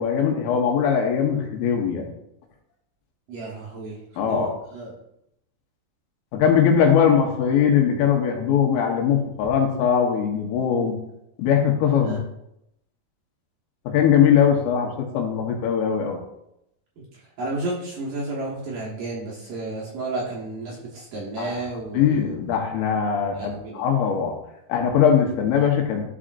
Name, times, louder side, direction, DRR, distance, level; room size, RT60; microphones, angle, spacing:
voice 1, 0.0-2.1 4.2-4.5 6.3-10.9 11.4-12.2 13.9-16.2 21.4-21.6 21.9-24.3 24.7-26.0, left 7 dB, 80° left, 1 dB, 3.5 m, -20 dB
voice 2, 3.3-4.9 12.0-12.2 17.0-17.1 17.4-22.3 23.3-23.9, right 2 dB, 75° right, -5 dB, 2.0 m, -32 dB
12.5 x 4.9 x 2.5 m, 0.81 s
omnidirectional pair, 5.8 m